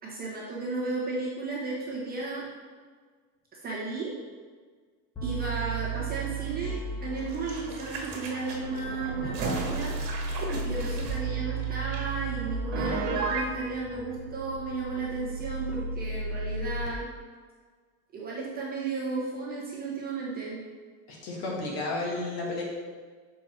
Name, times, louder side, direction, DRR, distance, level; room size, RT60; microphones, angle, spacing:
voice 1, 0.0-2.5 3.6-4.1 5.2-9.9 10.6-17.1 18.1-20.6, right 3 dB, 20° right, -6 dB, 1.1 m, -34 dB
sound 1, 5.2-16.9, right 3 dB, 10° left, 0.4 m, -35 dB
sound 2, 7.2-12.0 12.3-12.4, right 3 dB, 45° right, 1.6 m, -37 dB
Piano, 12.7-13.5, right 4 dB, 75° right, 1.3 m, -29 dB
voice 2, 21.1-22.6, left 2 dB, 45° left, -3 dB, 1.8 m, -32 dB
6.3 x 4.4 x 4.4 m, 1.5 s
supercardioid pair, 155°, 49 cm